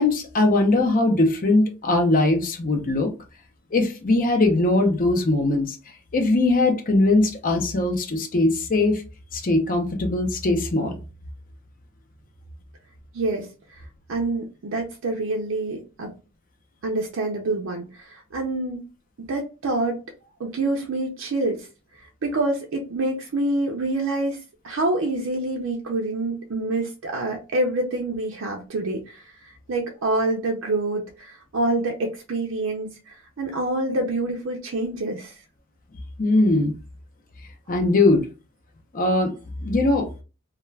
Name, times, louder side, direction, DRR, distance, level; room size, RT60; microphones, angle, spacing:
voice 1, 0.0-3.1 3.7-5.8 6.1-9.0 9.3-11.0 36.2-36.7 37.7-38.2 38.9-39.3 39.6-40.1, left 2 dB, 40° left, 0.5 m, -20 dB
voice 2, 13.1-13.8 14.1-16.1 16.8-18.8 19.3-20.0 20.4-21.7 21.9-24.4 24.6-35.3, right 2 dB, 65° right, 0.5 m, -27 dB
2.3 x 2.2 x 3.1 m
head